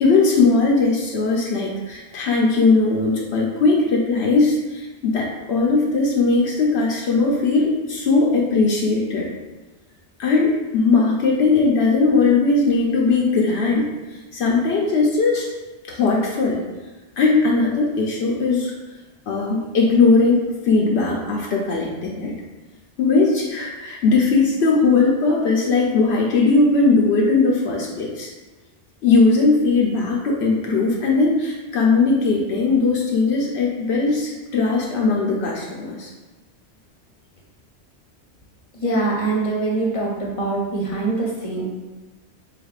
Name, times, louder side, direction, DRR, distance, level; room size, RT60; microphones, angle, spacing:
voice 1, 0.0-9.3 10.2-13.9 14.3-15.5 15.9-16.6 17.2-18.7 19.3-22.4 23.0-28.3 29.0-36.1, left 3 dB, 75° left, -2 dB, 0.9 m, -19 dB
voice 2, 38.7-41.6, right 2 dB, 35° left, -4 dB, 0.7 m, -23 dB
4.0 x 3.4 x 2.4 m, 1.2 s
omnidirectional pair, 1.1 m